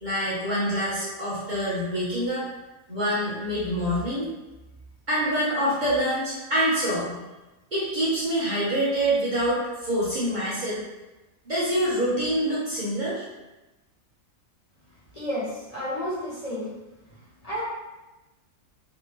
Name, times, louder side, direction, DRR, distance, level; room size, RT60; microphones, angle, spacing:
voice 1, 0.0-2.5 2.9-4.3 5.1-7.1 7.7-10.8 11.5-13.2, equal, 40° right, -9 dB, 0.9 m, -26 dB
voice 2, 15.1-16.7 17.4-17.6, equal, 30° left, -10 dB, 0.9 m, -31 dB
3.3 x 2.9 x 3.2 m, 1.1 s
omnidirectional pair, 1.5 m